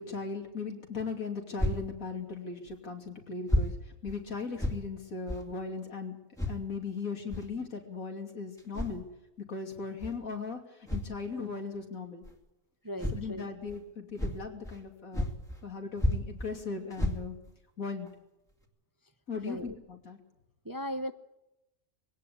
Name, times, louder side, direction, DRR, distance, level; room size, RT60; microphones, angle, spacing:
voice 1, 0.0-6.2 6.5-9.0 9.4-12.2 13.1-15.3 15.6-17.4 17.8-18.1 19.3-20.2, left 4 dB, 85° left, 3 dB, 3.3 m, -38 dB
sound 1, 1.6-1.8 2.7-2.8 3.5-3.7 4.1-4.2 4.6-4.8 5.3-5.4 6.3-6.6 7.3-7.5 8.6-9.0 10.0-10.1 10.9-11.1 12.2-12.3 13.0-13.2 13.7-13.8 14.2-14.8 15.1-15.6 16.0-16.5 16.9-17.5 18.1-18.2 18.6-18.7, left 1 dB, ahead, 2.3 m, -31 dB
voice 2, 12.8-13.5 19.3-19.8 20.6-21.1, equal, 20° right, 9 dB, 0.7 m, -37 dB
21.0 x 17.5 x 8.6 m, 0.92 s
omnidirectional pair, 1.4 m